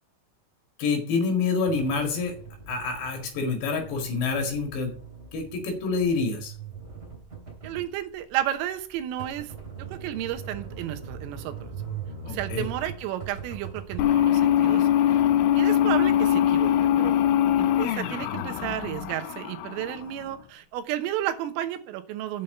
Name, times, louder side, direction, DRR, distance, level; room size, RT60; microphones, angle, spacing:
voice 1, 0.8-2.3 2.7-4.9 5.3-6.5 12.3-12.6, left 4 dB, 65° left, 4 dB, 3.8 m, -27 dB
sound 1, 1.7-14.0, right 6 dB, 25° right, 2.9 m, -41 dB
voice 2, 7.6-9.5 9.9-11.5 12.2-15.2 15.5-17.1 17.6-22.4, right 12 dB, 85° right, 8 dB, 3.5 m, -32 dB
sound 2, 14.0-20.4, left 11 dB, 85° left, 3.2 m, -22 dB
8.2 x 5.7 x 7.9 m, 0.43 s
omnidirectional pair, 5.8 m